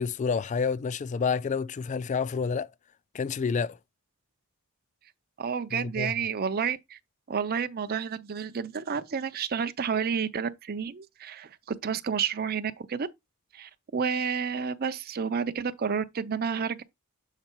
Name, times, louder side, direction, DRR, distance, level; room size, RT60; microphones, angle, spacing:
voice 1, 0.0-2.7 3.1-3.8 5.7-6.1, left 5 dB, 35° left, 0.3 m, -29 dB
voice 2, 5.4-7.0 7.3-13.1 13.5-16.8, right 6 dB, 45° right, 0.5 m, -30 dB
6.7 x 3.8 x 4.5 m
head